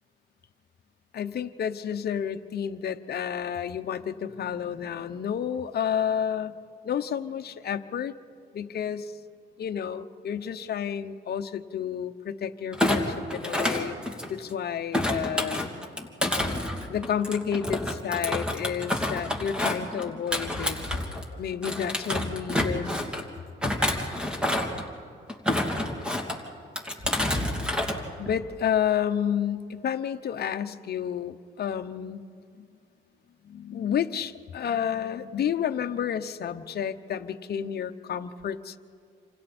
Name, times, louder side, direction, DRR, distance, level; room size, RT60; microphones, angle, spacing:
voice 1, 1.1-6.5 6.8-8.1 8.5-9.1 9.6-14.0 14.3-15.7 16.9-20.8 21.4-23.0 28.2-32.2 32.5-32.6 33.4-38.8, left 8 dB, 55° left, 7 dB, 1.0 m, -30 dB
Thump thud, 12.7-14.5 14.9-21.3 21.6-23.2 23.6-24.8 25.3-26.4 26.8-28.0 28.3-28.6, left 1 dB, 5° right, 2.8 m, -28 dB
28.0 x 26.5 x 4.4 m, 2.4 s
cardioid pair, 90°, 20 cm